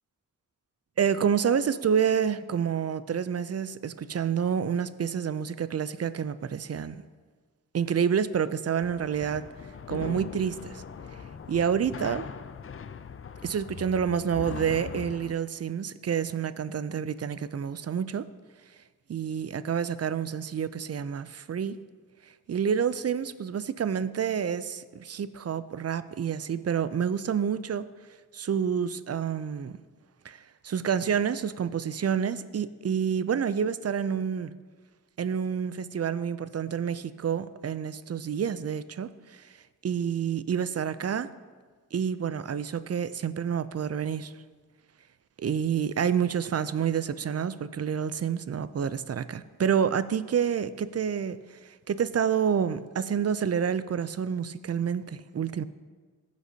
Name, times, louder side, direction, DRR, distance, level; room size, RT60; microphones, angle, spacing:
voice 1, 1.0-7.0 7.7-9.4 9.9-10.8 11.5-12.3 13.4-18.3 19.1-21.8 22.5-27.9 28.3-29.8 30.2-34.5 35.2-39.5 39.8-41.3 41.9-44.3 45.4-55.6, right 7 dB, 50° right, 15 dB, 0.4 m, -28 dB
sound 1, 8.8-15.3, left 6 dB, 40° left, 0.4 m, -40 dB
15.0 x 6.4 x 2.8 m, 1.5 s
cardioid pair, 45°, 33 cm